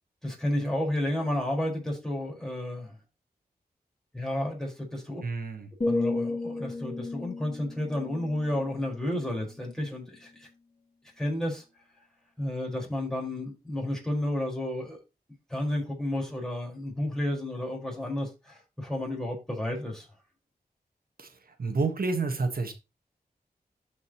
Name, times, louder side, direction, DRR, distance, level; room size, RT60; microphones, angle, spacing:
voice 1, 0.2-2.9 4.1-5.2 5.8-10.5 11.2-11.6 12.4-15.0 15.5-20.1, left 1 dB, 5° left, 4.7 m, -31 dB
voice 2, 5.2-5.7 21.2-21.3 21.6-22.7, right 3 dB, 65° right, 1.5 m, -29 dB
sound 1, 5.8-9.8 10.1-10.5, left 2 dB, 35° left, 2.8 m, -33 dB
13.0 x 5.2 x 3.0 m
wide cardioid pair, 65°, 16 cm